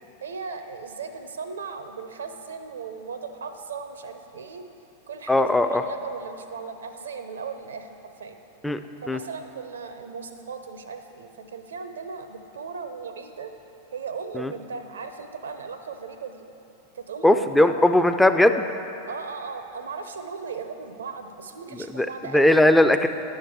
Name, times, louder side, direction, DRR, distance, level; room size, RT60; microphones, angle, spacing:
voice 1, 0.2-4.6 5.1-8.4 9.0-13.5 13.9-16.4 16.9-17.8 19.1-22.5, right 5 dB, 65° right, 8 dB, 0.6 m, -37 dB
voice 2, 5.3-5.8 8.6-8.8 9.1-9.2 14.3-14.5 17.2-18.7 21.9-22.1 22.3-23.1, left 1 dB, 5° left, 9 dB, 0.4 m, -18 dB
10.5 x 6.5 x 4.8 m, 2.9 s
figure-of-eight pair, 90°, 0 cm